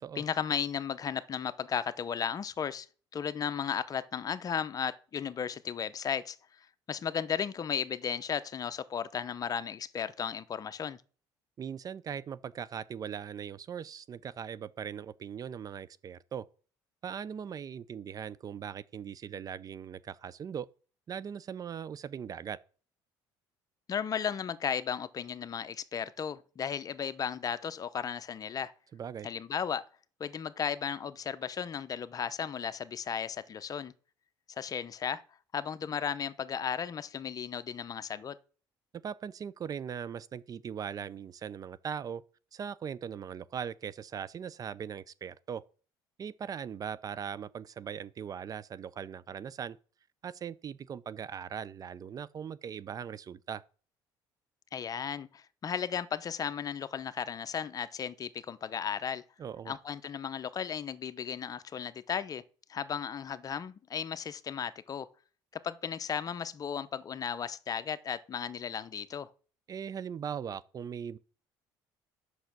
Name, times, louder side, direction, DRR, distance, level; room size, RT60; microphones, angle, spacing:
voice 1, 0.1-2.9 3.1-11.0 23.9-28.7 29.2-29.9 30.2-33.9 34.5-35.2 35.5-38.4 54.7-59.2 59.7-62.4 62.7-65.1 65.5-69.3, left 7 dB, 40° left, 0.8 m, -35 dB
voice 2, 11.6-16.5 17.0-20.7 21.1-22.6 28.9-29.3 38.9-42.2 42.5-45.6 46.2-49.8 50.2-53.6 59.4-59.8 69.7-71.2, right 8 dB, 40° right, 0.5 m, -40 dB
8.0 x 6.3 x 6.0 m
supercardioid pair, 85°, 9 cm